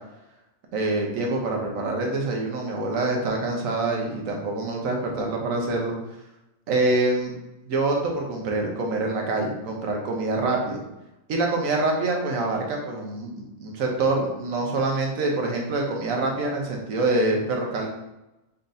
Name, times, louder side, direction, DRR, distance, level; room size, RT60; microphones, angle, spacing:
voice 1, 0.7-6.0 6.7-7.3 7.6-10.8 11.3-17.9, right 2 dB, 85° right, 0 dB, 1.3 m, -25 dB
4.1 x 3.9 x 2.6 m, 0.92 s
omnidirectional pair, 1.4 m